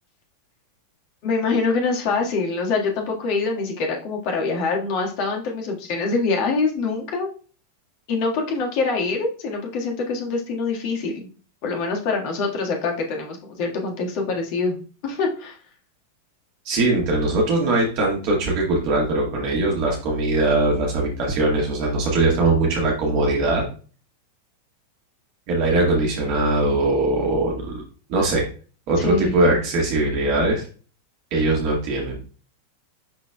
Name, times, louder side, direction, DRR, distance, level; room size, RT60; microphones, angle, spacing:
voice 1, 1.2-7.3 8.1-11.3 11.6-14.8 15.0-15.6 29.0-29.3, left 4 dB, 45° left, 1 dB, 1.7 m, -24 dB
voice 2, 16.7-23.6 25.5-27.8 28.1-28.5 28.9-30.7 31.3-32.2, right 2 dB, 45° right, -1 dB, 1.7 m, -21 dB
11.0 x 4.0 x 2.3 m, 0.38 s
figure-of-eight pair, 90°, 0 cm